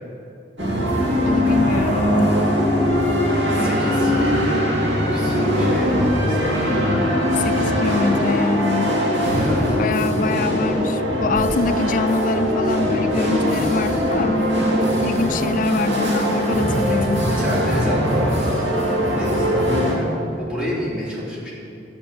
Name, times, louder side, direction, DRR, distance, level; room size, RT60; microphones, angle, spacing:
sound 1, 0.6-19.9, equal, 70° right, 2.5 m, -21 dB
voice 1, 1.2-2.3 6.7-9.0 9.8-14.4 15.0-17.2, left 3 dB, 45° left, 12 dB, 0.3 m, -25 dB
Keyboard (musical), 1.7-14.1, left 1 dB, 20° left, 1.0 m, -31 dB
voice 2, 3.5-4.8 5.1-6.8 7.6-8.1 9.3-9.8 16.6-16.9 17.3-18.6 19.2-21.5, equal, 5° right, -9 dB, 2.9 m, -30 dB
12.0 x 5.2 x 8.6 m, 2.7 s
head